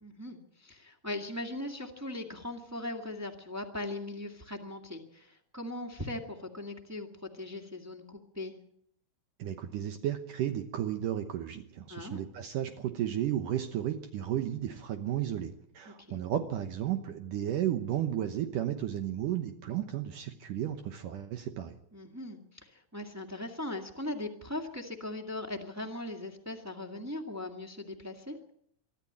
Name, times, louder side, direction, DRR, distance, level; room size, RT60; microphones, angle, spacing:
voice 1, 0.0-8.5 11.9-12.2 15.9-16.2 21.9-28.4, left 1 dB, 10° right, 2 dB, 0.7 m, -39 dB
voice 2, 9.4-21.8, right 11 dB, 70° right, 7 dB, 2.5 m, -33 dB
24.0 x 13.0 x 8.8 m, 0.68 s
omnidirectional pair, 4.3 m